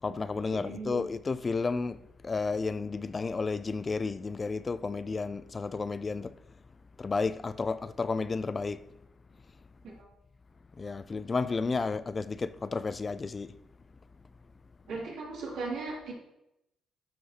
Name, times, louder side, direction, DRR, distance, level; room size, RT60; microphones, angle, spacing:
voice 1, 0.0-6.3 7.0-8.8 10.8-13.6, left 4 dB, 30° left, 0.3 m, -32 dB
voice 2, 0.5-1.1 9.8-10.1 14.9-16.1, right 3 dB, 80° right, 2.2 m, -38 dB
11.5 x 4.9 x 2.8 m
cardioid pair, 90°, 0 cm